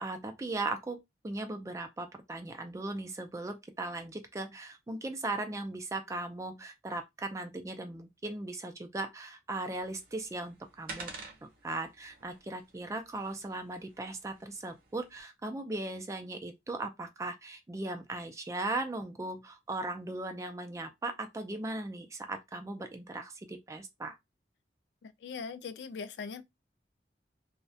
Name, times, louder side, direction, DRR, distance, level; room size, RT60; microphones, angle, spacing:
voice 1, 0.0-11.1 11.4-24.2, right 2 dB, 15° right, 0.3 m, -38 dB
sound 1, 9.7-15.2, right 4 dB, 55° right, 0.6 m, -50 dB
voice 2, 25.0-26.4, left 5 dB, 75° left, 0.3 m, -40 dB
2.3 x 2.1 x 2.6 m
head